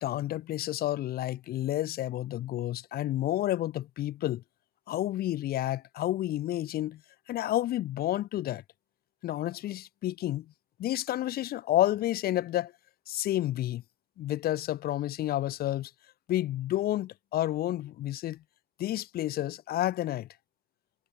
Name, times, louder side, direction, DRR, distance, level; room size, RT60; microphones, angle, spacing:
voice 1, 0.0-4.4 4.9-7.0 7.3-8.6 9.2-10.5 10.8-12.7 13.1-13.8 14.2-15.9 16.3-18.4 18.8-20.3, left 14 dB, 65° left, 1.0 m, -30 dB
cardioid pair, 110°, 17 cm